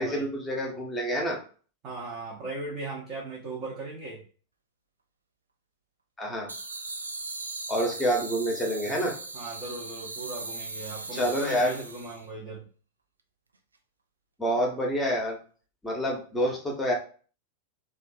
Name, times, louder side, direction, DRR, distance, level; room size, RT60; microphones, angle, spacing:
voice 1, 0.0-1.4 6.2-6.5 7.7-9.1 11.1-11.7 14.4-15.4 15.8-16.9, equal, 10° left, 0 dB, 1.0 m, -27 dB
voice 2, 1.8-4.2 8.9-12.7, right 2 dB, 35° right, -5 dB, 0.9 m, -38 dB
sound 1, 6.5-12.2, right 3 dB, 80° right, 0.3 m, -38 dB
3.0 x 2.4 x 2.6 m, 0.40 s
figure-of-eight pair, 90°, 0 cm